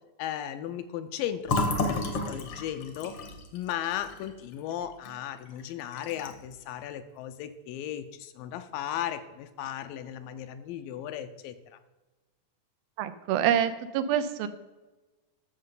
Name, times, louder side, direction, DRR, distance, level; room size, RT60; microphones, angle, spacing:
voice 1, 0.2-3.2 3.5-11.6, left 11 dB, 80° left, 9 dB, 2.2 m, -36 dB
Fill (with liquid), 1.4-5.1 5.5-5.6 5.9-6.5, left 2 dB, 60° left, 1.4 m, -32 dB
voice 2, 13.0-14.5, right 10 dB, 85° right, 11 dB, 2.5 m, -26 dB
13.0 x 6.6 x 3.8 m, 1.1 s
omnidirectional pair, 4.2 m